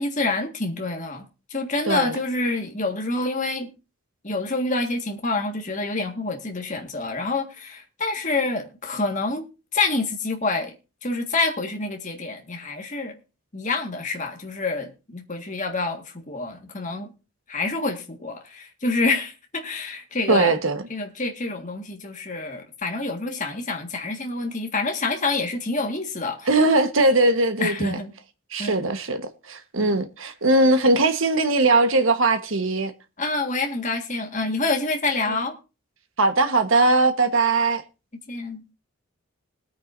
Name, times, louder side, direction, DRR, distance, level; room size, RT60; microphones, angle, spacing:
voice 1, 0.0-3.7 4.2-9.4 9.7-10.7 11.0-13.2 13.5-17.1 17.5-20.5 20.9-26.5 27.6-28.1 28.6-28.8 29.8-30.0 33.2-35.6 38.3-38.6, left 3 dB, 35° left, 1.7 m, -27 dB
voice 2, 20.3-20.8 26.4-28.0 28.5-32.9 35.3-35.4 36.2-37.8, right 2 dB, 65° right, 1.3 m, -20 dB
20.5 x 9.3 x 2.7 m
head